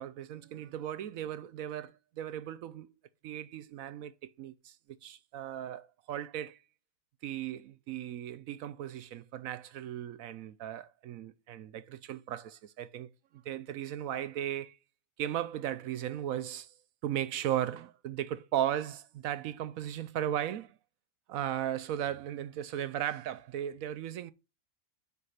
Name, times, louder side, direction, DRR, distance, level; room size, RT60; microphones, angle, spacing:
voice 1, 0.0-2.9 3.2-6.6 7.2-13.1 13.4-14.8 15.2-16.7 17.0-20.8 21.3-24.3, right 11 dB, 70° right, 0.9 m, -36 dB
8.0 x 5.2 x 5.7 m
omnidirectional pair, 1.7 m